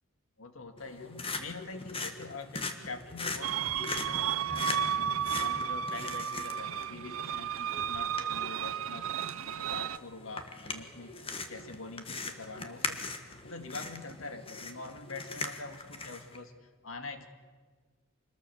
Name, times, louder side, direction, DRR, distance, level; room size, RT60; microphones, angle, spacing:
voice 1, 0.4-9.0 9.4-11.1 11.5-17.3, left 3 dB, 75° left, 7 dB, 2.0 m, -45 dB
sound 1, 0.8-16.4, left 3 dB, 25° left, 1.6 m, -41 dB
sound 2, 3.4-10.0, right 9 dB, 80° right, 0.6 m, -33 dB
25.5 x 20.5 x 7.0 m, 1.5 s
head